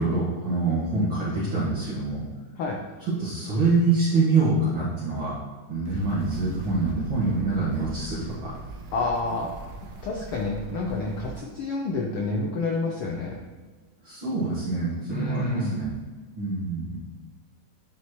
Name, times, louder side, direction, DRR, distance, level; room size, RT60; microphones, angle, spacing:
voice 1, 0.0-2.2 3.2-5.3 5.7-8.5 14.0-15.9 16.4-17.0, right 3 dB, 50° right, -9 dB, 2.0 m, -25 dB
sound 1, 5.8-11.4, right 3 dB, 85° right, 2.3 m, -40 dB
voice 2, 8.9-9.5 10.0-13.4 15.1-15.8, left 3 dB, 85° left, 0 dB, 1.2 m, -29 dB
9.7 x 5.6 x 3.1 m, 1.4 s
omnidirectional pair, 3.3 m